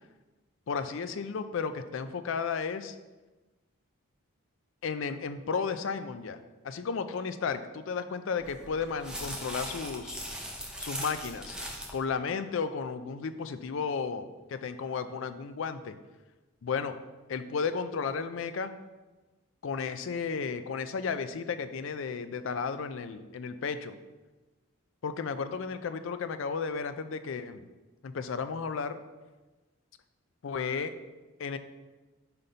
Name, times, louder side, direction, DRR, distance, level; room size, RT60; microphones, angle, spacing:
voice 1, 0.7-2.9 4.8-6.4 6.6-10.2 10.8-11.6 11.9-16.0 16.6-17.0 17.3-18.7 19.6-24.0 25.0-27.7 28.0-29.0 30.4-30.9 31.4-31.6, left 5 dB, 60° left, 11 dB, 0.4 m, -33 dB
sound 1, 8.4-12.0, equal, 5° right, 0.6 m, -39 dB
5.7 x 5.2 x 4.0 m, 1.2 s
head